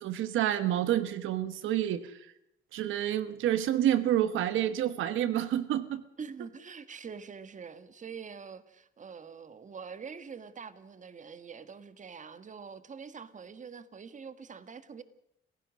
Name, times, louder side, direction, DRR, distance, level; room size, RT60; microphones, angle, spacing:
voice 1, 0.0-2.3 2.7-6.0, right 11 dB, 85° right, 1.2 m, -28 dB
voice 2, 6.2-15.0, right 6 dB, 40° right, 1.6 m, -45 dB
28.0 x 16.0 x 6.4 m
cardioid pair, 90°, 20 cm